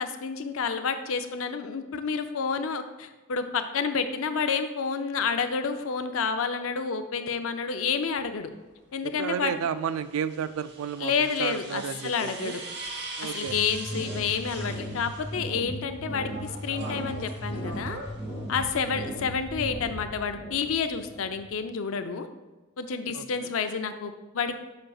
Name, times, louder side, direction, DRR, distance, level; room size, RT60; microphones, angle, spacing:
voice 1, 0.0-8.5 8.9-9.5 11.0-12.6 13.3-18.0 18.5-22.3 22.8-24.6, left 5 dB, 75° left, 8 dB, 0.5 m, -29 dB
sound 1, 8.1-8.2 9.6-15.6 15.9-19.2, right 3 dB, 50° right, 0.9 m, -42 dB
voice 2, 9.2-12.5 13.2-13.6 18.6-18.7 23.1-23.2, right 7 dB, 75° right, 14 dB, 0.3 m, -32 dB
sound 2, 13.5-21.6, equal, 20° left, 1.1 m, -37 dB
7.6 x 6.1 x 2.4 m, 1.2 s
head